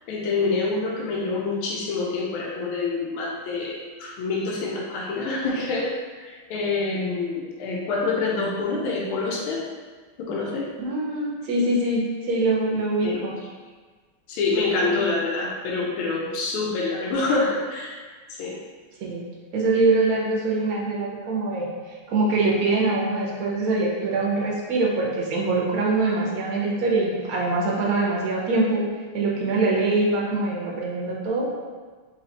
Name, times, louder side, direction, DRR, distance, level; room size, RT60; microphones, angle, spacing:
voice 1, 0.1-5.9 6.1-9.6 10.2-10.7 13.0-13.2 14.3-18.0 18.3-18.6, left 3 dB, 80° left, -3 dB, 1.4 m, -26 dB
voice 2, 10.8-13.3 14.8-15.0 19.0-19.2 19.5-28.8 29.1-31.4, right 2 dB, 60° right, -4 dB, 1.0 m, -23 dB
4.2 x 2.4 x 4.0 m, 1.4 s
omnidirectional pair, 2.4 m